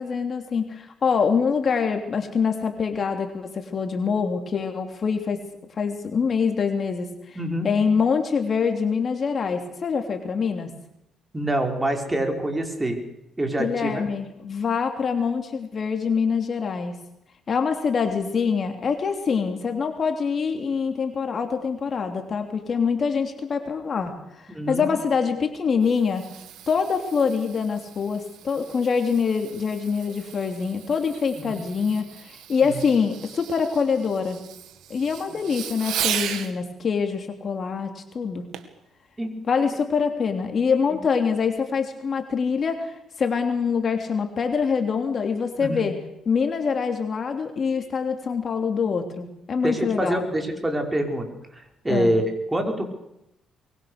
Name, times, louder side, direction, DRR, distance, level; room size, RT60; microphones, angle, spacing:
voice 1, 0.0-5.5 5.8-7.4 7.6-10.7 13.6-16.9 17.5-26.3 26.7-34.4 34.9-38.4 39.4-46.0 46.2-50.2 51.9-52.1, left 5 dB, 45° left, 5 dB, 3.1 m, -25 dB
voice 2, 7.4-7.7 11.3-13.0 13.4-14.0 24.5-24.9 31.3-31.6 32.6-32.8 35.3-35.4 39.2-39.3 45.6-45.9 49.6-51.3 51.5-52.8, right 1 dB, 15° right, 3 dB, 5.5 m, -26 dB
Fireworks, 25.5-36.5 38.5-38.8 39.4-39.5, right 10 dB, 85° right, 2.3 m, -36 dB
24.0 x 22.5 x 6.7 m, 0.85 s
cardioid pair, 90°, 0 cm